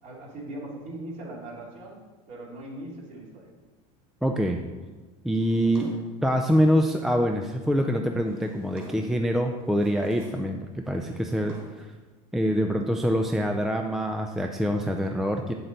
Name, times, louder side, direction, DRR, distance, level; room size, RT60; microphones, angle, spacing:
voice 1, 0.0-2.0 2.3-3.5 5.6-6.0, right 1 dB, 45° right, -3 dB, 2.9 m, -40 dB
voice 2, 4.2-4.6 5.2-5.9 6.2-10.6 10.9-11.9 12.3-15.5, equal, ahead, 4 dB, 0.4 m, -25 dB
Drawer open or close, 5.3-7.1 7.9-9.2 9.6-10.5 10.8-12.0, equal, 15° right, 3.0 m, -52 dB
9.3 x 7.6 x 4.0 m, 1.3 s
supercardioid pair, 140°, 17 cm